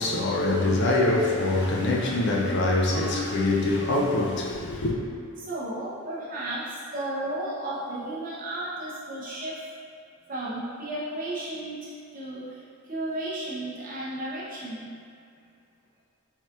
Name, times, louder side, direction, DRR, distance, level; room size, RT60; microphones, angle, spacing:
voice 1, 0.0-4.9, left 2 dB, 50° left, 0.4 m, -24 dB
voice 2, 5.4-9.6 10.3-12.6 12.9-14.9, right 1 dB, 40° right, 0.8 m, -33 dB
4.1 x 3.6 x 2.5 m
head